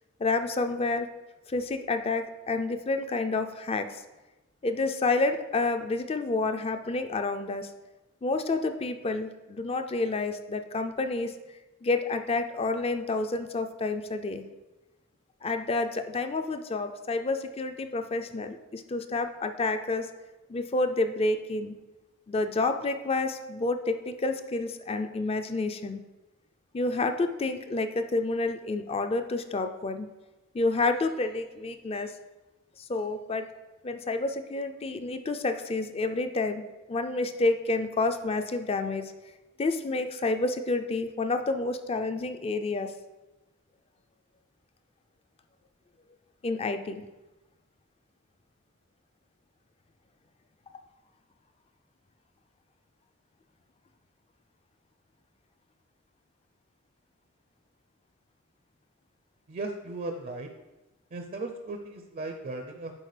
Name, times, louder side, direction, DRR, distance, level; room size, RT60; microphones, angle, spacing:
voice 1, 0.2-1.1 1.5-4.0 4.6-7.7 8.2-11.3 11.8-14.5 15.4-20.1 20.5-21.8 22.3-26.0 26.7-30.1 30.5-32.1 32.8-33.5 33.8-36.6 36.9-39.1 39.6-42.9 46.4-47.0, left 3 dB, 30° left, 8 dB, 0.4 m, -29 dB
voice 2, 59.5-60.5 61.1-62.9, right 2 dB, 40° right, 5 dB, 0.5 m, -36 dB
10.5 x 4.3 x 3.3 m, 1.1 s
head